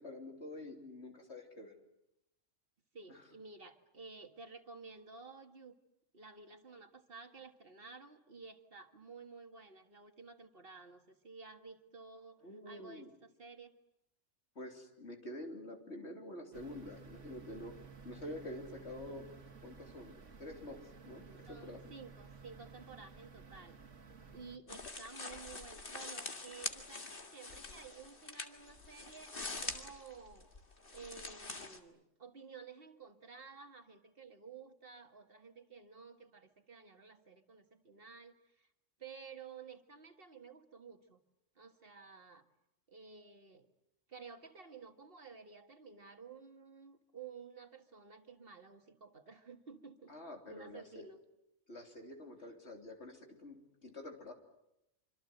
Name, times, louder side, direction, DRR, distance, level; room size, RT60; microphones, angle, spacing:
voice 1, 0.0-1.8 3.1-3.2 12.4-13.1 14.6-19.3 19.6-21.9 24.7-24.8 50.1-51.1 51.7-54.3, left 1 dB, 65° left, 3 dB, 3.7 m, -48 dB
voice 2, 2.9-5.8 6.1-13.7 21.5-23.8 24.3-30.4 30.9-38.7 39.0-41.2 41.6-42.4 42.9-43.7 44.1-50.1 50.5-51.2, right 5 dB, 50° right, 7 dB, 1.8 m, -53 dB
sound 1, 16.5-24.6, right 5 dB, 75° right, 2.0 m, -54 dB
sound 2, 24.7-31.8, left 3 dB, 45° left, 2.1 m, -45 dB
26.0 x 26.0 x 7.9 m, 0.85 s
omnidirectional pair, 1.3 m